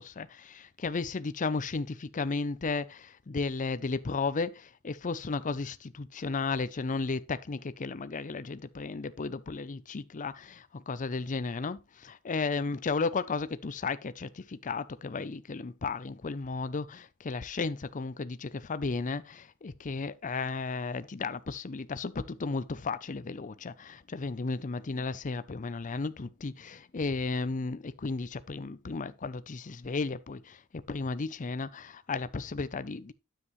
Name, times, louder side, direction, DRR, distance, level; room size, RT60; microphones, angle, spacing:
voice 1, 0.0-33.1, left 4 dB, 40° left, 0.5 m, -34 dB
9.7 x 7.6 x 3.1 m
head